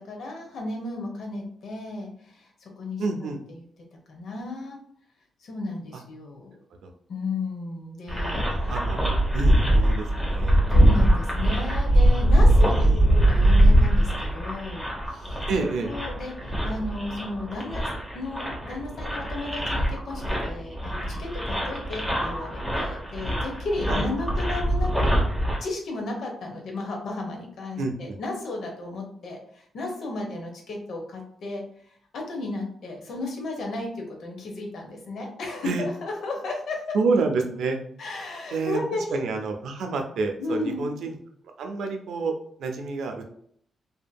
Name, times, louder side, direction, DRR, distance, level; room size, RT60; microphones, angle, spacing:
voice 1, 0.0-3.6 4.1-4.8 5.4-6.6 7.1-8.4 10.7-16.3 16.6-17.9 18.1-25.2 25.6-31.6 32.1-37.0 38.0-39.0 40.4-40.9, left 2 dB, 75° left, 1 dB, 0.7 m, -34 dB
voice 2, 3.0-3.4 6.8-6.9 8.4-9.0 9.3-10.6 12.7-13.1 15.5-15.9 23.9-24.1 27.8-28.2 35.6-35.9 36.9-37.8 38.5-38.8 39.1-41.1 41.6-42.3 42.6-43.2, right 4 dB, 85° right, 4 dB, 0.4 m, -28 dB
sound 1, 8.1-25.6, right 1 dB, 5° left, 0.8 m, -22 dB
2.7 x 2.6 x 2.2 m, 0.64 s
cardioid pair, 100°, 0 cm